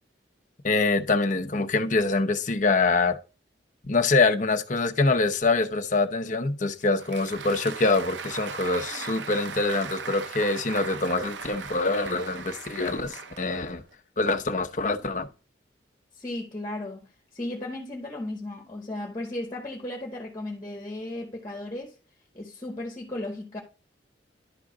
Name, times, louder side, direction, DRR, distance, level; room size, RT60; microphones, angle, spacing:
voice 1, 0.6-3.2 3.8-13.8 14.2-15.3, left 3 dB, 45° left, 0.7 m, -25 dB
Applause, 6.8-13.9, right 6 dB, 75° right, 0.6 m, -38 dB
voice 2, 16.2-17.1 17.3-21.9 22.3-23.6, left 1 dB, 20° left, 1.6 m, -35 dB
11.5 x 3.8 x 4.8 m
head